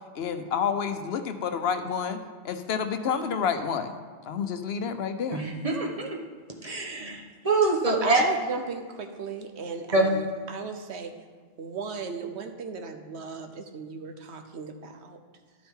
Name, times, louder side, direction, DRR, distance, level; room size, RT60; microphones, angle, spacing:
voice 1, 0.2-2.2 2.4-3.9 4.2-5.4, left 6 dB, 75° left, 9 dB, 0.9 m, -29 dB
voice 2, 5.3-6.1 6.6-8.2 9.9-10.1, right 3 dB, 35° right, 0 dB, 1.2 m, -25 dB
voice 3, 7.8-11.1 11.6-15.2, right 5 dB, 85° right, 6 dB, 1.1 m, -36 dB
12.0 x 7.0 x 3.7 m, 1.5 s
omnidirectional pair, 1.1 m